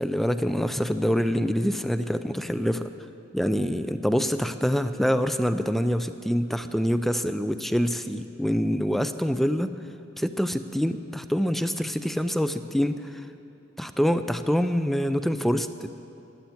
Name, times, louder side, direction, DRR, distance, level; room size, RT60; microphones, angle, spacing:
voice 1, 0.0-2.9 3.3-9.7 10.2-13.2 13.8-15.9, equal, ahead, 10 dB, 0.4 m, -25 dB
13.0 x 8.3 x 9.3 m, 2.6 s
head